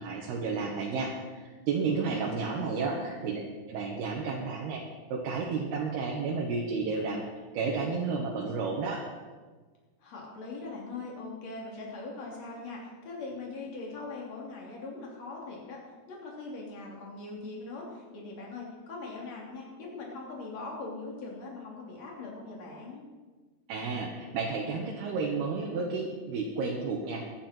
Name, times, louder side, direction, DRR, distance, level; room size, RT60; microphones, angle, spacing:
voice 1, 0.0-3.4 3.7-4.8 5.1-7.3 7.5-9.0 23.7-27.3, right 4 dB, 75° right, -2 dB, 3.3 m, -32 dB
voice 2, 2.1-2.9 10.0-15.8 16.1-23.0, left 3 dB, 45° left, -2 dB, 4.0 m, -41 dB
23.0 x 10.0 x 4.5 m, 1.3 s
omnidirectional pair, 4.7 m